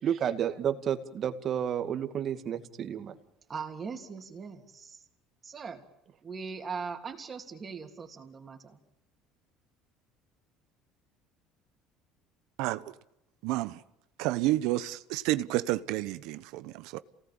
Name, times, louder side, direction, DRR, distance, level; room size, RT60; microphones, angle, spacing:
voice 1, 0.0-3.2, right 9 dB, 50° right, 2.2 m, -31 dB
voice 2, 3.5-5.0 5.4-5.8 6.2-8.8, right 5 dB, 30° right, 3.2 m, -40 dB
voice 3, 12.6-12.9 13.4-13.8 14.2-17.0, right 17 dB, 75° right, 0.9 m, -30 dB
28.0 x 18.5 x 8.9 m
supercardioid pair, 95°, 0 cm